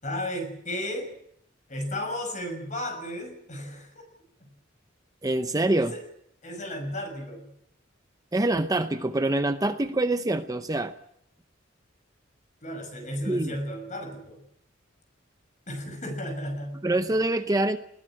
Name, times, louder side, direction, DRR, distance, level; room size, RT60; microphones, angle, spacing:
voice 1, 0.0-1.1 1.7-4.0 4.4-4.5 5.7-6.0 6.4-7.5 12.6-14.4 15.7-16.8, left 1 dB, 40° left, 6 dB, 6.2 m, -34 dB
voice 2, 5.2-5.9 8.3-10.9 13.3-13.5 16.8-17.8, right 2 dB, 20° right, 9 dB, 0.7 m, -25 dB
20.5 x 16.5 x 8.9 m, 0.75 s
head